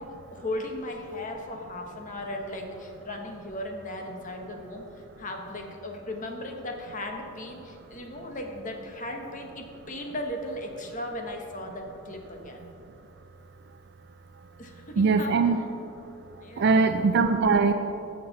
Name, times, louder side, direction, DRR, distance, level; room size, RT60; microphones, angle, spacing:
voice 1, 0.0-4.9 5.2-12.7 14.6-15.5 16.4-16.8, left 1 dB, 40° left, 3 dB, 1.1 m, -37 dB
voice 2, 15.0-15.6 16.6-17.7, right 4 dB, 55° right, 8 dB, 0.4 m, -21 dB
15.5 x 6.5 x 4.1 m, 2.8 s
head